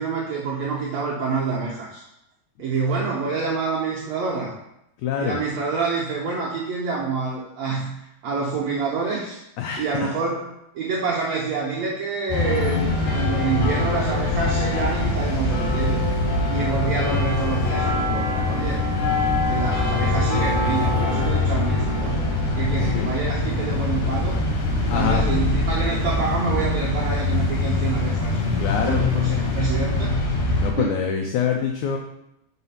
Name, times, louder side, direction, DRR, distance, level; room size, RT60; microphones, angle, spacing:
voice 1, 0.0-2.0 2.6-4.5 5.2-9.4 9.8-16.1 16.5-18.8 19.5-22.2 22.5-24.4 24.9-28.4 28.8-30.1 30.8-31.0, right 4 dB, 80° right, -5 dB, 1.6 m, -27 dB
voice 2, 5.0-5.4 9.6-10.1 22.8-23.1 24.9-25.3 28.6-29.1 30.6-32.0, left 7 dB, 85° left, 2 dB, 1.7 m, -25 dB
sound 1, 12.3-30.7, left 2 dB, 65° left, 2.2 m, -23 dB
4.9 x 4.0 x 5.6 m, 0.84 s
omnidirectional pair, 4.1 m